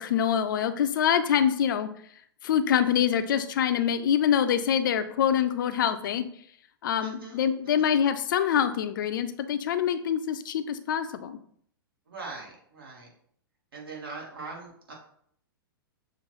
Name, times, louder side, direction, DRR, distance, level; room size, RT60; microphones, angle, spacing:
voice 1, 0.0-1.9 2.4-6.3 6.8-11.4, left 9 dB, 60° left, 10 dB, 0.4 m, -25 dB
voice 2, 7.0-7.9 12.1-13.1 13.7-14.9, right 4 dB, 70° right, -3 dB, 1.8 m, -42 dB
6.8 x 2.5 x 3.0 m, 0.64 s
figure-of-eight pair, 105°, 12 cm